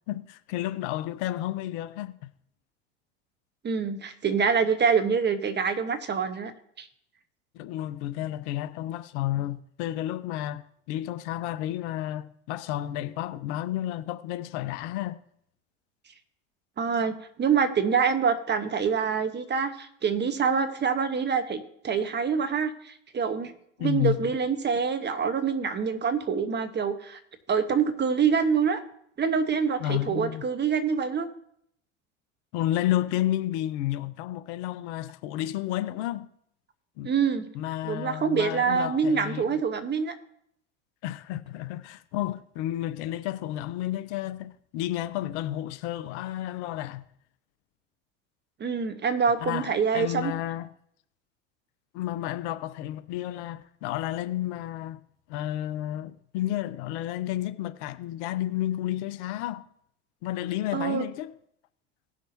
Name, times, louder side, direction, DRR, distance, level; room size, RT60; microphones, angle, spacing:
voice 1, 0.1-2.3 7.5-15.2 23.8-24.2 29.8-30.4 32.5-36.3 37.0-37.1 37.5-39.6 41.0-47.0 49.4-50.7 51.9-55.0 55.3-59.7 60.2-61.3, left 13 dB, 65° left, 0.8 m, -31 dB
voice 2, 3.6-6.5 6.8-6.9 16.8-23.5 23.8-27.2 27.5-28.8 29.2-31.3 37.0-37.5 37.8-40.2 48.6-50.3 60.7-61.0, right 6 dB, 30° right, 1.3 m, -26 dB
18.0 x 6.1 x 2.8 m
hypercardioid pair, 85°, 37 cm